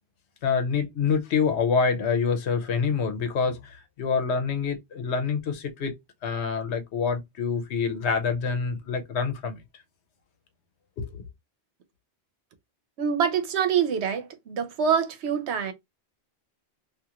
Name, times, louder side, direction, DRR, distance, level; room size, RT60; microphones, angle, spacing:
voice 1, 0.4-5.9 6.2-9.6 11.0-11.2, left 5 dB, 85° left, 0.9 m, -26 dB
voice 2, 13.0-15.7, right 7 dB, 80° right, 0.9 m, -25 dB
2.8 x 2.5 x 2.3 m
omnidirectional pair, 1.1 m